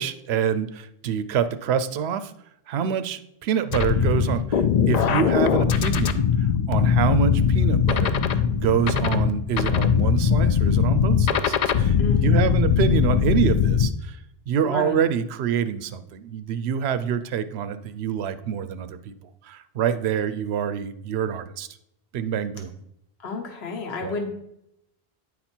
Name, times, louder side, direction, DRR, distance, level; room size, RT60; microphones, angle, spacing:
voice 1, 0.0-2.3 2.7-12.0 12.2-14.2 14.5-19.1 19.4-21.7 22.1-22.7 24.0-24.2, right 8 dB, 90° right, 12 dB, 0.8 m, -26 dB
sound 1, 3.7-13.9, left 7 dB, 55° left, 0.5 m, -21 dB
voice 2, 12.0-12.7 14.6-15.0 23.2-24.3, left 4 dB, 80° left, 3 dB, 1.2 m, -31 dB
9.6 x 4.2 x 4.3 m, 0.78 s
omnidirectional pair, 1.0 m